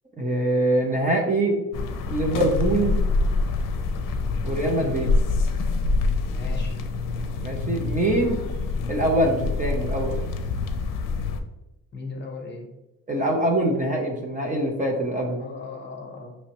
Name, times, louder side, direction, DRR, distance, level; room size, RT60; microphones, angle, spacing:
voice 1, 0.2-1.6 2.1-3.0 4.4-5.1 7.4-8.4 8.9-10.2 13.1-15.4, right 1 dB, 25° right, -1 dB, 0.5 m, -24 dB
sound 1, 1.7-11.4, left 3 dB, 70° left, 0.6 m, -26 dB
voice 2, 6.3-6.8 11.9-12.7 15.4-16.4, left 3 dB, 30° left, 1 dB, 0.8 m, -37 dB
5.4 x 3.1 x 2.9 m, 1.0 s
cardioid pair, 155°, 34 cm